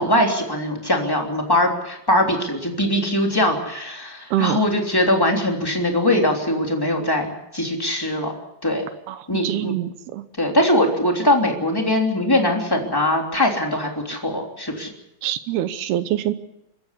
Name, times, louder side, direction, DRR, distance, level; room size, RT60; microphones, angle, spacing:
voice 1, 0.0-8.3 8.6-8.8 9.3-9.7 10.4-14.9, left 1 dB, 5° left, 1 dB, 2.3 m, -21 dB
voice 2, 4.3-4.6 9.1-10.2 15.2-16.3, right 12 dB, 75° right, 12 dB, 2.5 m, -25 dB
26.0 x 14.5 x 8.3 m, 0.85 s
omnidirectional pair, 5.3 m